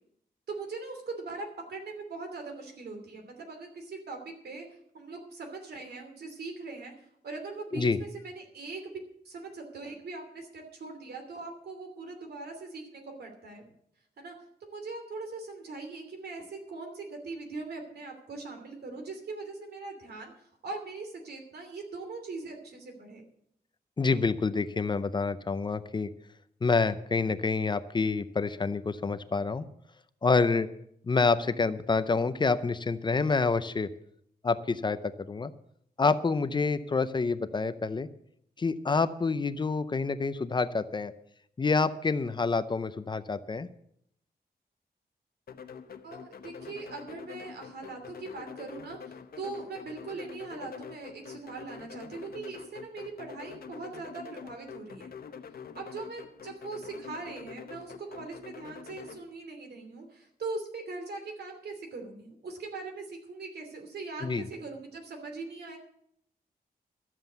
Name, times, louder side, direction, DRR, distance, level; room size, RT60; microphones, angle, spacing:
voice 1, 0.5-4.7 4.9-6.9 7.2-9.0 9.2-13.7 14.2-14.3 14.6-20.3 20.6-23.2 46.0-55.1 55.7-65.8, right 3 dB, 85° right, 4 dB, 2.9 m, -41 dB
voice 2, 24.0-26.1 26.6-29.7 30.2-30.7 31.1-33.9 34.4-35.0 35.3-35.5 36.0-38.1 38.6-41.1 41.6-43.7 64.2-64.4, left 4 dB, 30° left, 13 dB, 0.5 m, -27 dB
sound 1, 45.5-59.2, left 6 dB, 70° left, 0.9 m, -46 dB
12.5 x 7.4 x 8.0 m, 0.71 s
wide cardioid pair, 175°, 16 cm